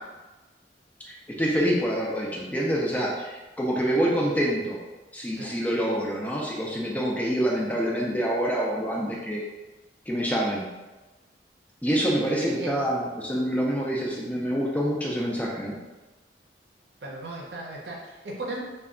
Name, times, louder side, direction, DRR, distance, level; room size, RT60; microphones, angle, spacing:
voice 1, 1.1-4.8 5.1-9.4 10.1-10.7 11.8-15.8, equal, 10° left, -3 dB, 0.4 m, -26 dB
voice 2, 12.2-12.8 17.0-18.6, right 2 dB, 70° right, -2 dB, 0.6 m, -36 dB
2.2 x 2.2 x 3.6 m, 1.1 s
head